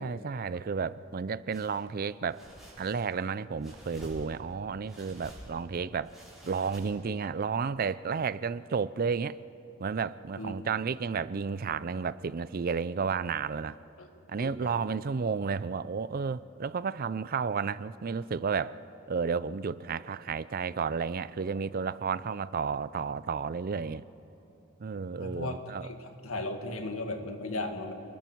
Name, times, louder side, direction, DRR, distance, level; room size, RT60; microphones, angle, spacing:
voice 1, 0.0-2.4 2.8-6.1 6.4-9.4 9.8-13.8 14.3-18.7 19.1-24.0 24.8-25.9, right 5 dB, 45° right, 17 dB, 0.4 m, -32 dB
sound 1, 1.5-1.8 2.3-3.2 3.6-4.5 4.9-5.6 6.0-7.2, equal, ahead, 5.5 m, -49 dB
voice 2, 14.4-14.8 25.0-27.9, left 2 dB, 85° left, 5 dB, 2.0 m, -37 dB
29.5 x 20.0 x 4.6 m, 3.0 s
head